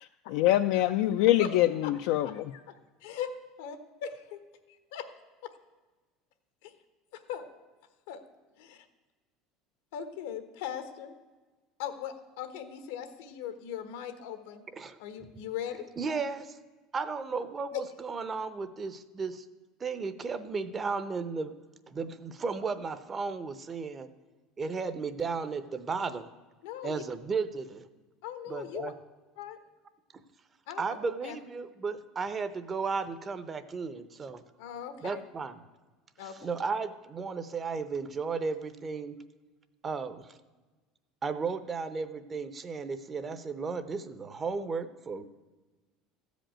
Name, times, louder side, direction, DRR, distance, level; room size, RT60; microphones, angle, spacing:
voice 1, 0.3-2.5, left 14 dB, 70° left, 7 dB, 0.4 m, -24 dB
voice 2, 2.2-2.6 3.0-3.3 3.6-3.8 4.3-4.4 4.9-5.0 6.6-6.7 7.1-7.5 8.1-8.2 9.9-11.1 11.8-14.6 15.0-15.9 26.6-27.0 28.2-28.9 29.4-29.6 30.7-30.9 31.2-31.4 34.6-35.2 36.2-36.3, left 10 dB, 85° left, 9 dB, 1.2 m, -39 dB
voice 3, 16.0-16.6 16.9-19.4 19.8-21.5 21.9-24.1 24.6-26.3 26.8-27.9 28.5-28.9 30.8-34.4 35.0-35.6 36.2-39.2 39.8-40.4 41.2-45.2, right 4 dB, 25° right, 12 dB, 0.6 m, -34 dB
14.0 x 5.2 x 8.8 m, 1.2 s
cardioid pair, 145°, 0 cm